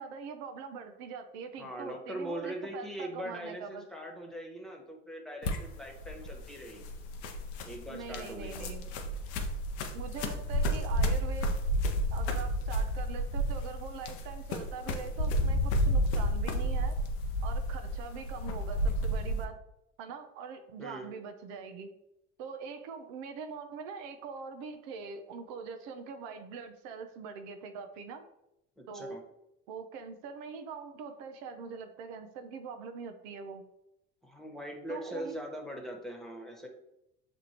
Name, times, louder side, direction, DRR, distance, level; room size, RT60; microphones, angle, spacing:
voice 1, 0.0-3.9 7.9-8.9 9.9-11.6 12.1-17.0 17.4-19.6 20.0-21.9 22.4-28.2 28.9-29.2 29.7-33.6 34.9-35.4, right 5 dB, 75° right, 6 dB, 0.6 m, -43 dB
voice 2, 1.6-6.9 7.7-8.8 20.8-21.1 28.8-29.2 34.2-36.7, equal, ahead, 0 dB, 1.3 m, -41 dB
sound 1, 5.4-19.4, equal, 80° left, 0.7 m, -31 dB
7.2 x 2.6 x 2.9 m, 0.86 s
hypercardioid pair, 75°, 32 cm